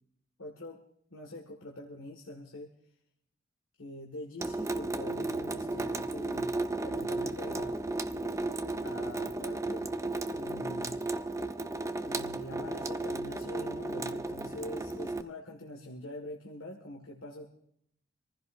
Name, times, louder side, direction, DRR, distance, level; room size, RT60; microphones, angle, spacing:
voice 1, 0.4-0.8 1.1-2.7 3.8-6.5 6.8-7.8 8.8-9.9 10.3-11.0 12.0-17.5, left 1 dB, 80° left, 0 dB, 1.8 m, -44 dB
Water tap faucet / Sink (filling or washing) / Drip, 4.4-15.2, right 2 dB, 15° right, 0.5 m, -34 dB
26.0 x 15.0 x 2.6 m, 0.72 s
head